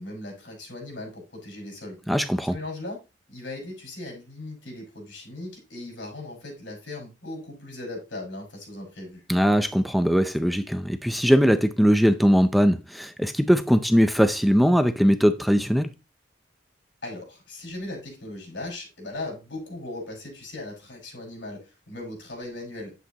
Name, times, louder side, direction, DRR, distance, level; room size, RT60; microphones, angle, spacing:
voice 1, 0.0-2.0 2.4-3.0 3.3-9.2 17.0-22.9, left 2 dB, 80° left, 5.3 m, -38 dB
voice 2, 2.1-2.6 9.3-15.9, equal, ahead, 0.4 m, -20 dB
10.0 x 8.1 x 2.9 m
head